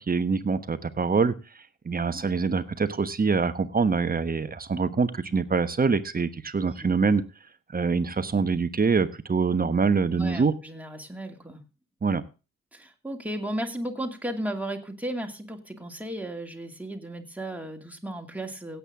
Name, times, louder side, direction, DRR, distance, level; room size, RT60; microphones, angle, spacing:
voice 1, 0.0-1.3 1.8-7.2 7.7-10.5 12.0-12.2, right 5 dB, 20° right, 12 dB, 1.2 m, -24 dB
voice 2, 6.6-6.9 10.1-11.6 12.7-18.8, right 1 dB, 5° right, 3 dB, 2.4 m, -35 dB
17.0 x 8.4 x 3.6 m, 0.31 s
hypercardioid pair, 45°, 39 cm